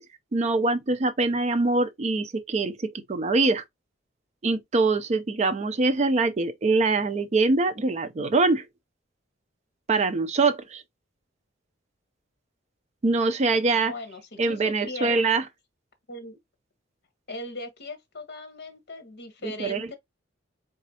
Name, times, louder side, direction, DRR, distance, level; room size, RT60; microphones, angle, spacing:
voice 1, 0.3-3.6 4.4-8.6 9.9-10.8 13.0-13.9 14.4-15.4 19.4-19.9, right 3 dB, 35° right, 0.5 m, -24 dB
voice 2, 13.6-15.3 16.1-16.4 17.3-20.0, left 2 dB, 60° left, 1.1 m, -39 dB
4.1 x 3.5 x 2.7 m
head